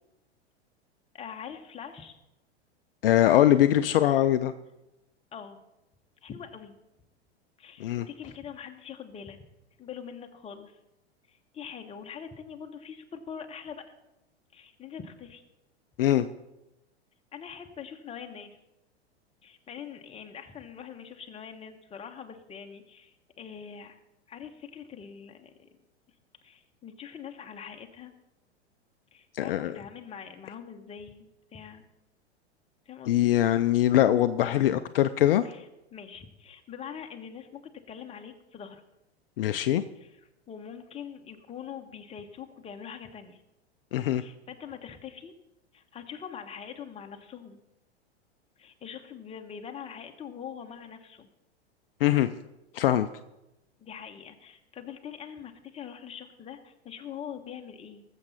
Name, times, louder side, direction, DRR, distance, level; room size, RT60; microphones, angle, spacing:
voice 1, 1.1-2.2 5.3-5.6 6.2-6.8 7.6-9.4 9.8-10.8 11.3-13.9 14.5-15.4 17.3-18.6 19.4-24.0 24.3-25.7 26.4-28.1 29.1-31.8 32.9-33.3 35.4-38.8 39.9-40.2 40.5-43.4 44.2-45.4 45.7-47.6 48.6-51.3 53.8-58.0, left 7 dB, 20° left, 4 dB, 1.1 m, -43 dB
voice 2, 3.0-4.5 7.8-8.1 16.0-16.3 29.3-29.7 33.1-35.4 39.4-39.8 43.9-44.2 52.0-52.3 52.7-53.1, left 12 dB, 60° left, 11 dB, 0.5 m, -22 dB
20.0 x 7.3 x 4.1 m, 0.92 s
figure-of-eight pair, 95°, 33 cm